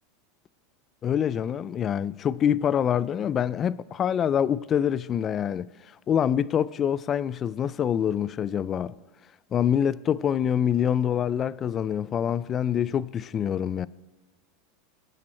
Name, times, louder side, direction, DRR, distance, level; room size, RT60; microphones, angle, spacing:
voice 1, 1.0-5.7 6.1-8.9 9.5-13.9, left 9 dB, 30° left, 0.4 m, -25 dB
24.0 x 10.5 x 4.3 m
supercardioid pair, 140°, 0 cm